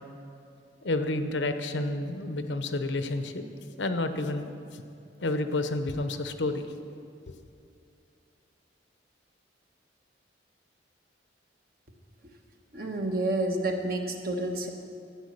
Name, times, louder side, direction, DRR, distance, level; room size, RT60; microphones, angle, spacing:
voice 1, 0.8-3.4 3.8-4.8 5.2-6.6, left 2 dB, 90° left, 9 dB, 0.8 m, -30 dB
voice 2, 12.7-14.7, right 1 dB, 55° right, 3 dB, 1.3 m, -29 dB
12.5 x 8.9 x 6.6 m, 2.6 s
head